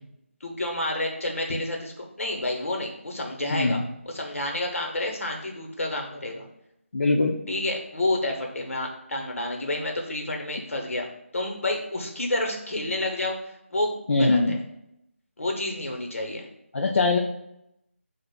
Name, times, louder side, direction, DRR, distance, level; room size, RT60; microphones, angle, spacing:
voice 1, 0.4-1.9 2.2-3.8 4.1-6.5 7.5-11.1 11.3-14.6 15.4-16.5, left 1 dB, 75° left, 1 dB, 1.0 m, -29 dB
voice 2, 3.5-3.8 6.9-7.4 14.1-14.6 16.7-17.2, left 3 dB, 60° left, -1 dB, 0.5 m, -22 dB
6.5 x 2.4 x 2.2 m, 0.82 s
figure-of-eight pair, 165°, 7 cm